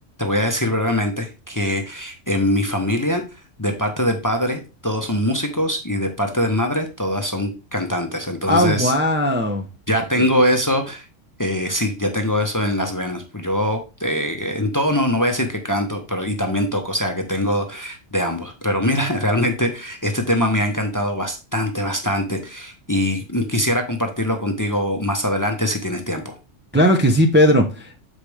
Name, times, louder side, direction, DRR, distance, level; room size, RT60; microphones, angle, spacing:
voice 1, 0.2-3.2 3.6-8.9 9.9-11.0 11.4-26.3, left 1 dB, 15° left, 5 dB, 0.8 m, -22 dB
voice 2, 8.5-9.7 26.7-28.0, equal, 10° right, 1 dB, 0.7 m, -17 dB
7.4 x 5.1 x 3.3 m, 0.30 s
omnidirectional pair, 1.3 m